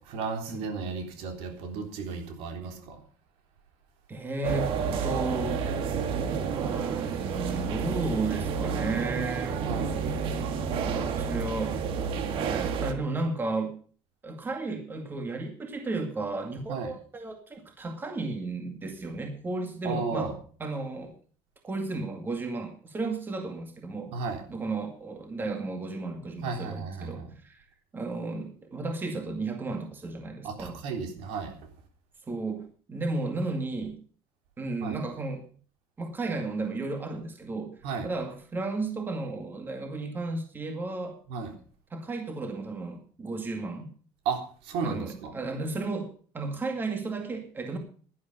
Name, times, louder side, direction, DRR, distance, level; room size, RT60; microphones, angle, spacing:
voice 1, 0.1-3.0 9.6-10.0 16.7-16.9 19.8-20.3 24.1-24.4 26.4-27.1 30.4-31.5 34.8-35.0 37.8-38.1 41.3-41.5 44.3-45.3, right 5 dB, 75° right, 4 dB, 3.5 m, -33 dB
voice 2, 2.6-2.9 4.1-4.7 5.0-5.6 6.5-9.9 10.7-11.8 12.4-13.7 14.2-20.3 20.6-21.1 21.6-24.1 24.5-27.7 27.9-30.8 32.3-34.0 34.6-35.5 36.0-37.7 38.0-41.2 41.9-43.9 44.8-47.8, right 3 dB, 20° right, 4 dB, 2.1 m, -34 dB
sound 1, 4.4-12.9, right 6 dB, 55° right, 1.8 m, -30 dB
11.5 x 11.0 x 5.4 m, 0.43 s
cardioid pair, 140°, 11 cm